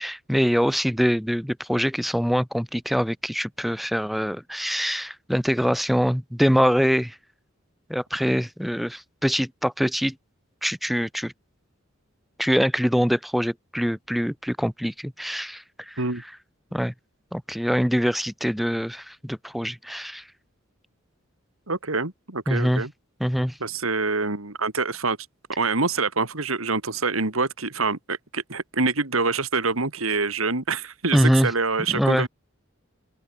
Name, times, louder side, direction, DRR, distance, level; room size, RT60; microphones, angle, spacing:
voice 1, 0.0-7.2 7.9-10.2 10.6-11.3 12.4-16.0 16.7-16.9 17.3-20.2 22.5-22.8 23.2-23.6 31.1-31.5 31.9-32.3, equal, ahead, 2.4 m, -24 dB
voice 2, 21.7-22.9 23.6-25.2 25.6-32.3, right 4 dB, 85° right, 2.9 m, -26 dB
open air
head